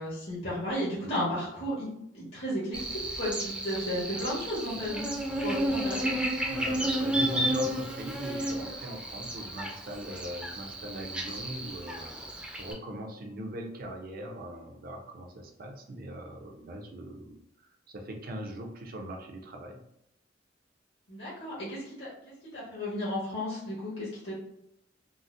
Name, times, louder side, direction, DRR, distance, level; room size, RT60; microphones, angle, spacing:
voice 1, 0.0-1.9 2.1-2.8 3.2-5.1 5.4-6.1 21.1-22.1 22.5-24.3, equal, 70° left, -8 dB, 1.2 m, -33 dB
Buzz, 2.7-12.7, right 1 dB, 5° right, 0.5 m, -32 dB
voice 2, 6.5-19.8, equal, 55° right, 2 dB, 0.6 m, -40 dB
3.8 x 2.0 x 2.5 m, 0.80 s
head